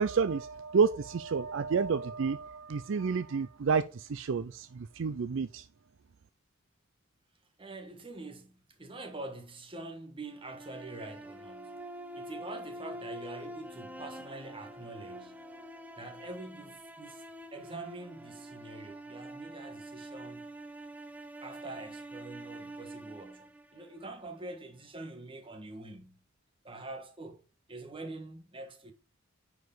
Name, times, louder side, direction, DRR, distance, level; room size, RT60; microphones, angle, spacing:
voice 1, 0.0-5.6, right 5 dB, 65° right, 0.4 m, -30 dB
voice 2, 7.6-11.8 12.1-15.4 15.9-20.5 21.4-26.2 26.6-27.4 27.7-28.9, right 2 dB, 25° right, 1.5 m, -45 dB
sound 1, 10.3-24.4, right 1 dB, 5° right, 0.6 m, -46 dB
9.4 x 4.8 x 3.9 m
head